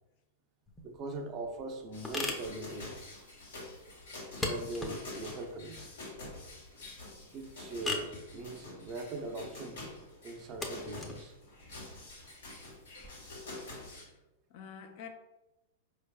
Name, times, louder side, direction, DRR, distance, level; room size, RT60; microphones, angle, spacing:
sound 1, 0.7-13.1, left 2 dB, 15° left, 0.7 m, -42 dB
voice 1, 0.8-2.9 4.4-5.9 7.3-9.8 10.2-11.3 11.8-12.0, right 2 dB, 35° right, 5 dB, 0.5 m, -41 dB
sound 2, 1.9-14.0, left 2 dB, 75° left, 1.3 m, -47 dB
voice 2, 13.6-13.9 14.5-15.1, left 7 dB, 50° left, 5 dB, 0.5 m, -48 dB
4.4 x 3.2 x 2.3 m, 1.0 s
hypercardioid pair, 105°, 0 cm